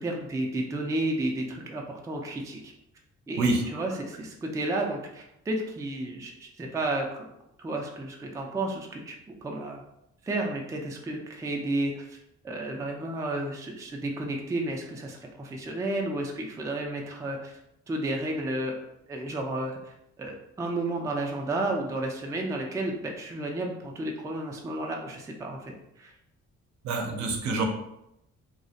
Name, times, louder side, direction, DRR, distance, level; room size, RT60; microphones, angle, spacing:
voice 1, 0.0-2.7 3.3-7.3 7.6-9.2 9.4-9.8 10.2-17.6 17.9-18.8 19.1-26.1, right 2 dB, 10° right, 1 dB, 0.3 m, -32 dB
voice 2, 26.8-27.6, right 3 dB, 65° right, 2 dB, 0.6 m, -26 dB
2.4 x 2.0 x 2.6 m, 0.81 s
cardioid pair, 90°, 30 cm